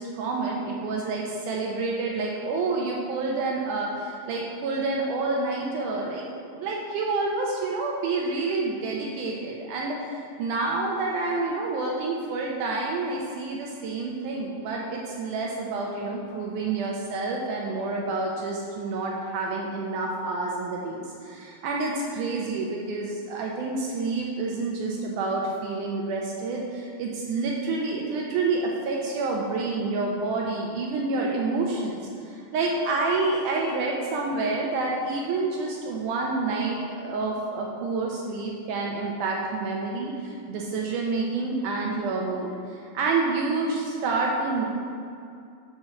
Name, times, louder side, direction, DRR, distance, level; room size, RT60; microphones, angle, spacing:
voice 1, 0.0-32.0 32.3-44.7, right 3 dB, 80° right, -2 dB, 1.8 m, -28 dB
7.5 x 4.3 x 5.8 m, 2.4 s
omnidirectional pair, 4.4 m